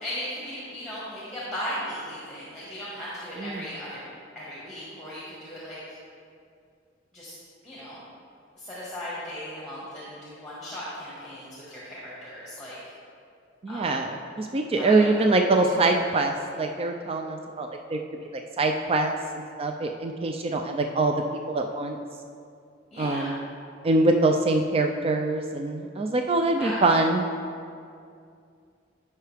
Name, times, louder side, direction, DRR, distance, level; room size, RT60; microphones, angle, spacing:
voice 1, 0.0-6.0 7.1-7.4 7.6-8.0 8.6-12.8 13.7-13.9 14.7-15.2 15.4-16.1 22.9-23.3 26.5-26.8, equal, ahead, -8 dB, 1.8 m, -37 dB
voice 2, 13.6-18.0 18.6-22.0 23.0-23.4 23.8-27.2, right 2 dB, 30° right, 4 dB, 0.4 m, -24 dB
14.0 x 5.6 x 3.4 m, 2.4 s
head